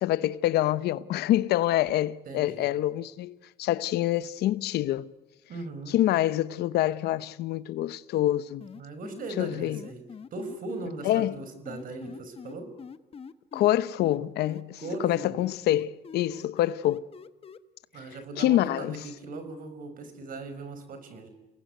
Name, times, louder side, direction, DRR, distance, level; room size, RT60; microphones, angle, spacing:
voice 1, 0.0-5.1 5.9-8.6 9.4-9.8 11.0-11.4 13.5-17.0 18.4-19.0, left 13 dB, 75° left, 0.9 m, -26 dB
voice 2, 2.3-2.7 5.5-5.9 8.7-10.0 10.3-12.7 14.8-15.4 17.9-21.3, right 3 dB, 55° right, 5.8 m, -39 dB
sound 1, 8.6-10.9 11.7-13.7 14.0-17.6, left 6 dB, 35° left, 1.3 m, -44 dB
30.0 x 19.5 x 9.4 m
cardioid pair, 110°, 17 cm